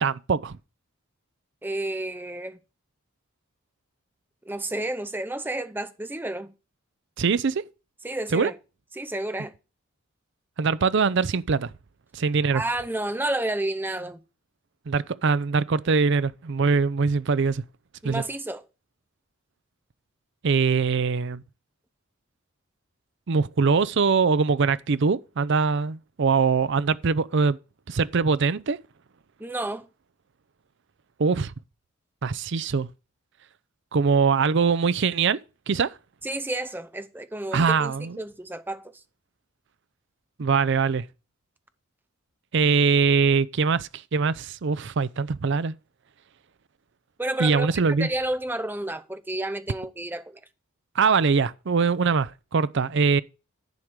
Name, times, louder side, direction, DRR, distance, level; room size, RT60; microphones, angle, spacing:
voice 1, 0.0-0.6 7.2-7.6 8.3-8.5 10.6-11.7 12.1-12.6 14.9-17.6 18.0-18.2 20.4-21.4 23.3-27.6 27.9-28.8 31.2-31.5 32.2-32.9 33.9-35.4 35.7-35.9 37.5-38.2 40.4-41.1 42.5-45.7 47.4-48.1 51.0-53.2, right 5 dB, 60° right, 0.5 m, -22 dB
voice 2, 1.6-2.6 4.4-6.5 8.0-8.6 8.9-9.5 12.5-14.2 18.0-18.6 29.4-29.9 36.2-39.0 47.2-50.4, right 1 dB, 10° right, 0.6 m, -31 dB
11.0 x 4.7 x 6.6 m
head